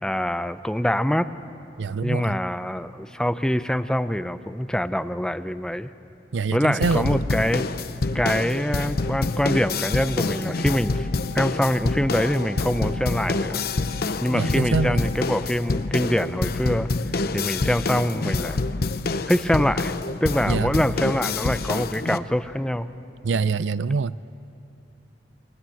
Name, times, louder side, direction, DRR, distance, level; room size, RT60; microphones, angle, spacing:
voice 1, 0.0-1.3 2.0-5.9 6.5-7.6 8.1-11.1 11.3-13.6 14.2-16.9 17.3-18.6 19.3-19.9 20.2-22.9, equal, 5° left, 11 dB, 0.6 m, -24 dB
voice 2, 1.8-2.4 6.3-7.2 14.3-15.0 20.5-20.7 23.2-24.2, right 4 dB, 85° right, 17 dB, 0.5 m, -24 dB
sound 1, 6.8-22.2, left 3 dB, 55° left, 0.8 m, -27 dB
sound 2, 8.9-15.4, left 4 dB, 30° right, 7.3 m, -44 dB
29.0 x 23.0 x 7.8 m, 2.7 s
head